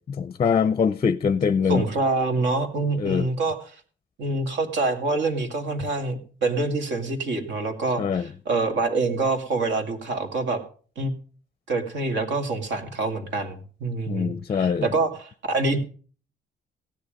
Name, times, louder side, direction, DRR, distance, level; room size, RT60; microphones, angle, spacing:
voice 1, 0.1-1.8 3.0-3.3 8.0-8.3 14.1-14.9, left 6 dB, 30° left, 0.5 m, -23 dB
voice 2, 1.7-3.8 4.2-10.6 11.0-11.1 11.7-15.8, right 3 dB, 70° right, 2.5 m, -26 dB
16.0 x 9.9 x 5.2 m
cardioid pair, 125°, 20 cm